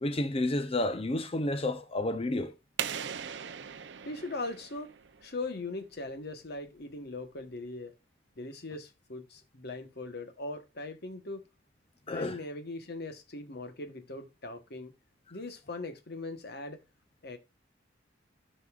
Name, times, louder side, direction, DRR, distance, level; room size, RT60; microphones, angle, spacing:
voice 1, 0.0-2.5 12.1-12.4, left 1 dB, 30° left, 0.6 m, -30 dB
sound 1, 2.8-5.4, right 8 dB, 65° right, 0.6 m, -39 dB
voice 2, 4.0-4.9 5.2-7.9 8.4-11.4 12.1-14.9 15.3-16.8 17.2-17.4, left 2 dB, 55° left, 1.2 m, -40 dB
13.0 x 5.4 x 2.4 m
head